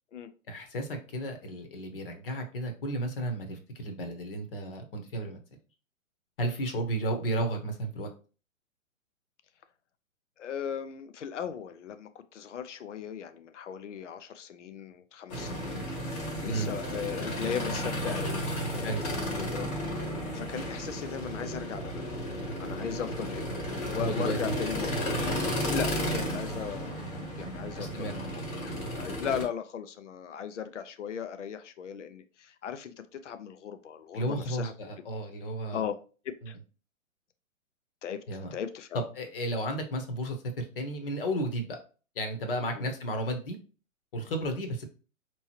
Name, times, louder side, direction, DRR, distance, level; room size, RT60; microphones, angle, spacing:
voice 1, 0.5-5.4 6.4-8.1 16.4-16.7 18.8-19.0 24.0-24.4 27.8-28.1 34.1-35.8 36.4-36.5 38.3-38.5 38.9-41.8 42.1-43.6 44.1-44.8, right 1 dB, 40° left, 1.0 m, -33 dB
voice 2, 10.4-15.9 16.1-22.2 22.6-24.9 25.7-32.9 33.2-34.7 35.7-35.9 36.5-36.6 38.0-38.2 38.5-39.0 42.8-42.9, left 8 dB, 60° left, 0.6 m, -38 dB
sound 1, 15.3-29.5, equal, 20° left, 1.0 m, -33 dB
5.3 x 3.1 x 2.9 m
figure-of-eight pair, 125°, 41 cm